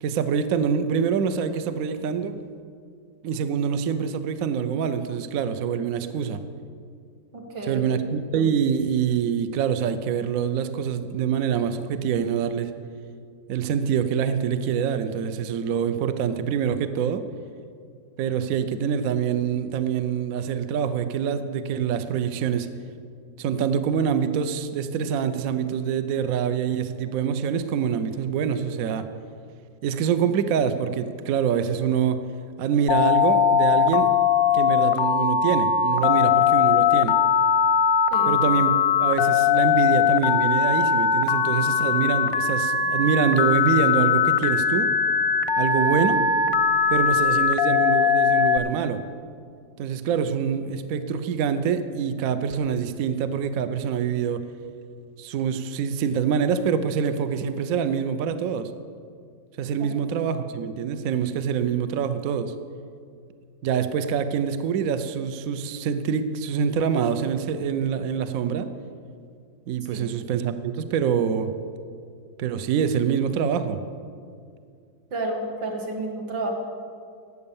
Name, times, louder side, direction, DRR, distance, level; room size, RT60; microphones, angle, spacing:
voice 1, 0.0-2.4 3.2-6.4 7.7-12.7 13.5-17.2 18.2-22.7 23.4-29.1 29.8-32.2 32.6-34.1 34.5-37.2 38.3-44.9 45.6-46.3 46.9-49.0 49.8-54.4 55.2-58.7 59.6-62.5 63.6-68.7 69.7-71.5 72.4-73.8, right 7 dB, 65° right, 10 dB, 0.9 m, -25 dB
voice 2, 7.3-7.9 38.1-38.3 59.8-59.9 69.9-70.1 75.1-76.5, right 2 dB, 80° right, 0 dB, 2.5 m, -31 dB
Telephone, 32.9-48.6, left 7 dB, 85° left, 1.4 m, -20 dB
13.0 x 8.4 x 7.0 m, 2.2 s
omnidirectional pair, 2.0 m